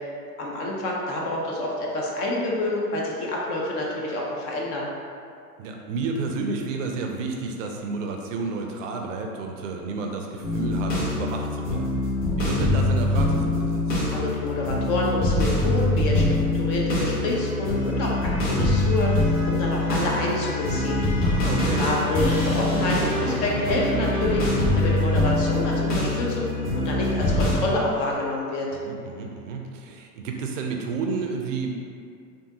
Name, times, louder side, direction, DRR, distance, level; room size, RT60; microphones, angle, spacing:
voice 1, 0.4-4.9 14.1-16.3 16.5-21.0 21.8-28.7, left 2 dB, 35° left, -3 dB, 0.5 m, -27 dB
voice 2, 5.6-11.9 12.4-13.8 21.2-21.9 28.7-31.7, right 4 dB, 55° right, 2 dB, 0.5 m, -31 dB
sound 1, 10.4-27.6, left 2 dB, 55° left, 1.4 m, -24 dB
sound 2, 16.2-22.6 22.9-28.3, left 1 dB, 80° left, 1.1 m, -42 dB
3.4 x 2.6 x 2.7 m, 2.3 s
hypercardioid pair, 100°, 47 cm